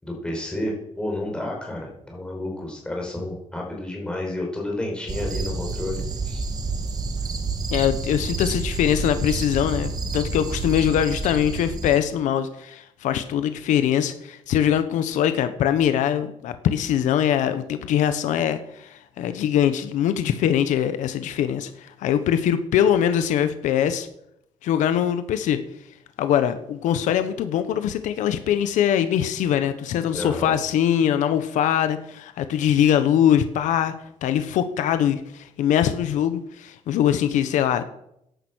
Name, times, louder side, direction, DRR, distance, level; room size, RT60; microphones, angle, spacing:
voice 1, 0.0-6.4 30.1-30.6, left 1 dB, 5° left, -1 dB, 5.4 m, -31 dB
sound 1, 5.1-12.0, right 3 dB, 30° right, 1.8 m, -29 dB
voice 2, 7.7-24.1 24.6-25.6 26.2-33.9 34.2-37.8, left 10 dB, 80° left, 10 dB, 1.2 m, -22 dB
14.5 x 11.0 x 6.4 m, 0.78 s
cardioid pair, 140°, 13 cm